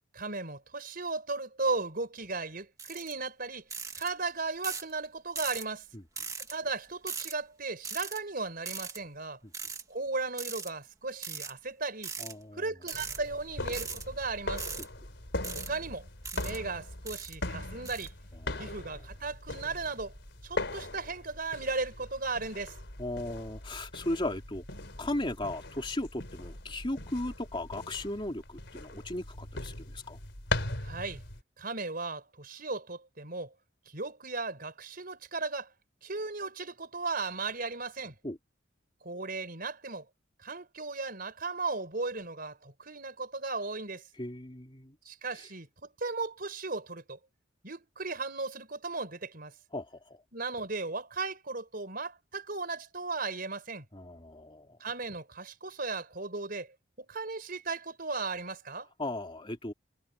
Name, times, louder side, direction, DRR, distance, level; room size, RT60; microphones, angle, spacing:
voice 1, 0.1-3.7 4.0-5.9 6.4-9.4 9.9-12.1 12.5-14.7 15.5-16.1 16.3-18.1 18.6-20.1 20.4-22.8 30.8-31.2 31.6-33.5 33.9-35.7 36.0-38.2 39.0-40.1 40.4-44.0 45.1-47.2 47.6-49.6 50.3-53.9 54.8-58.9, right 3 dB, 50° right, 5.1 m, -36 dB
sound 1, 2.8-3.1 3.7-4.1 4.6-4.9 5.4-5.7 6.2-6.5 7.1-7.3 7.8-8.2 8.7-9.0 9.5-9.8 10.4-10.7 11.2-11.5 12.0-12.3 12.8-13.2 13.7-14.0 14.6-14.9 15.4-15.7 16.2-16.6 17.1-17.4 17.9-18.1, right 5 dB, 15° right, 2.1 m, -39 dB
voice 2, 12.2-12.6 18.4-18.7 23.0-24.6 25.0-30.2 38.2-38.4 44.2-45.0 49.7-49.9 53.9-54.8 59.0-59.7, left 1 dB, 25° left, 2.9 m, -36 dB
sound 2, 12.9-31.4, left 2 dB, 60° left, 4.9 m, -40 dB
head